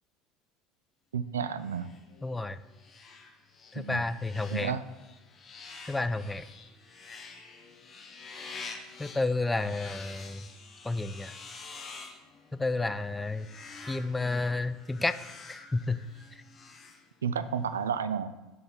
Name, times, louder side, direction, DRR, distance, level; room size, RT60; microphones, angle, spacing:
voice 1, 1.1-1.9 3.7-4.0 4.5-4.8 17.2-18.4, right 7 dB, 85° right, 13 dB, 0.3 m, -31 dB
sound 1, 1.6-17.6, left 4 dB, 35° left, 1.1 m, -48 dB
voice 2, 2.2-2.6 3.7-4.7 5.9-6.5 9.0-10.5 10.8-11.3 12.5-13.5 13.9-15.2 15.5-16.0, left 2 dB, 15° left, 12 dB, 0.4 m, -31 dB
6.7 x 4.2 x 5.3 m, 1.1 s
hypercardioid pair, 70°, 0 cm